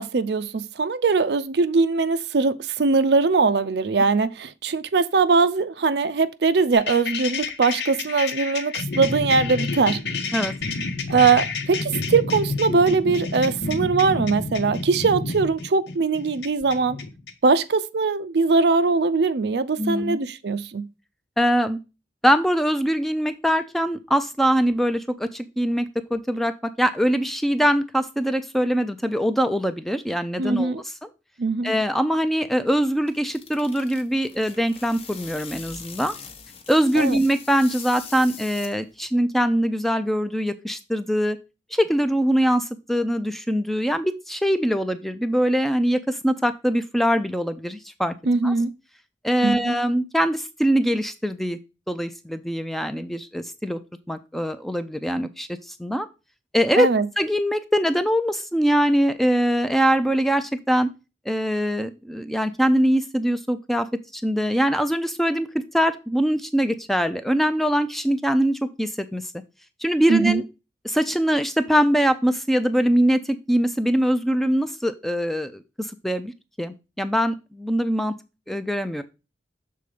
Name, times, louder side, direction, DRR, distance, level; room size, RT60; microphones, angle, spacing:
voice 1, 0.0-10.0 11.1-17.0 17.4-20.9 30.4-30.8 31.4-31.7 37.0-37.2 48.3-48.7 49.4-49.7 56.8-57.1 70.1-70.4, right 4 dB, 70° right, 0.5 m, -21 dB
sound 1, 6.7-17.3, left 3 dB, 80° left, 1.1 m, -29 dB
voice 2, 19.8-20.2 21.4-21.8 22.2-30.9 31.6-36.1 36.7-41.4 41.7-48.1 48.4-48.5 49.2-51.6 51.9-53.8 54.1-56.1 56.5-56.9 57.2-60.9 61.3-63.9 64.1-69.2 69.8-70.4 70.8-76.3 76.6-78.1 78.5-79.0, equal, ahead, 0.4 m, -23 dB
sound 2, 32.7-39.1, left 6 dB, 30° left, 0.8 m, -42 dB
6.8 x 3.8 x 4.9 m
head